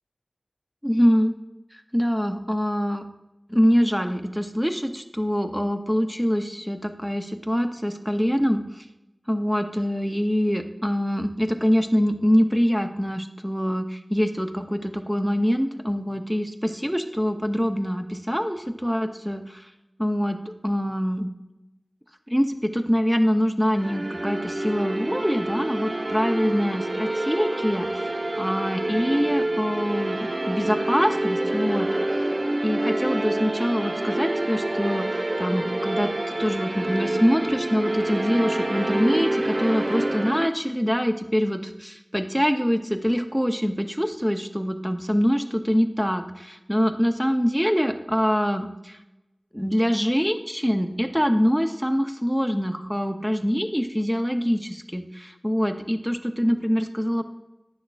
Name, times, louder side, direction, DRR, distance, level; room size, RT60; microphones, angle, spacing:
voice 1, 0.8-1.4 1.9-3.0 3.5-8.8 9.3-19.7 20.0-21.3 22.3-28.1 28.4-31.9 32.6-36.1 36.4-48.7 49.5-57.2, equal, ahead, 7 dB, 0.6 m, -24 dB
sound 1, 23.8-40.5, right 1 dB, 50° right, 0.3 m, -27 dB
9.1 x 6.3 x 2.4 m, 0.97 s
wide cardioid pair, 50°, 0 cm